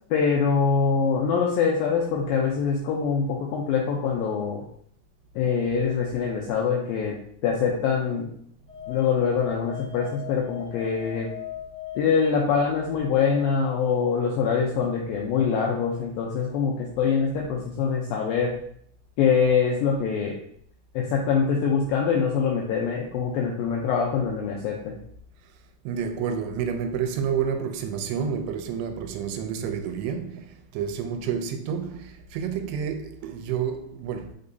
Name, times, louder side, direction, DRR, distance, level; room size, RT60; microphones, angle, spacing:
voice 1, 0.1-4.6 5.4-7.2 7.4-8.3 8.9-11.3 12.0-18.6 19.2-20.4 20.9-25.0, left 6 dB, 85° left, 2.0 m, -24 dB
sound 1, 8.7-13.8, left 11 dB, 20° left, 1.2 m, -40 dB
voice 2, 25.9-34.3, right 7 dB, 80° right, 2.6 m, -29 dB
6.7 x 5.3 x 2.7 m
omnidirectional pair, 4.9 m